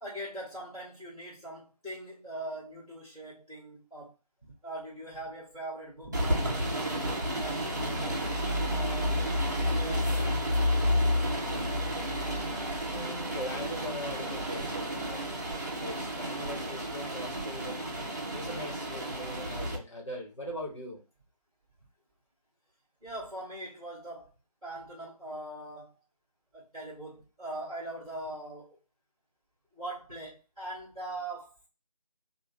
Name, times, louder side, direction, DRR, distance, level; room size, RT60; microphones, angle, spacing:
voice 1, 0.0-4.1 4.4-8.2 8.7-9.2 9.7-10.3 10.6-11.0 23.0-24.3 24.6-25.9 26.5-28.8 29.7-31.5, right 1 dB, ahead, 0.9 m, -41 dB
sound 1, 6.1-19.8, equal, 30° right, 0.8 m, -31 dB
voice 2, 12.9-21.0, equal, 50° left, 1.3 m, -41 dB
3.5 x 2.5 x 3.5 m
figure-of-eight pair, 165°, 20 cm